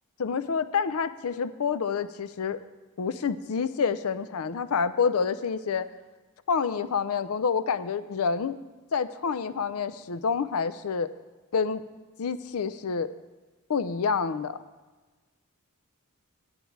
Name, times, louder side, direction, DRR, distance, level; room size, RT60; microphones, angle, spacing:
voice 1, 0.2-2.6 3.0-5.9 6.5-8.6 8.9-11.1 11.5-11.8 12.2-13.1 13.7-14.6, left 5 dB, 75° left, 14 dB, 0.5 m, -28 dB
9.9 x 9.5 x 4.6 m, 1.3 s
head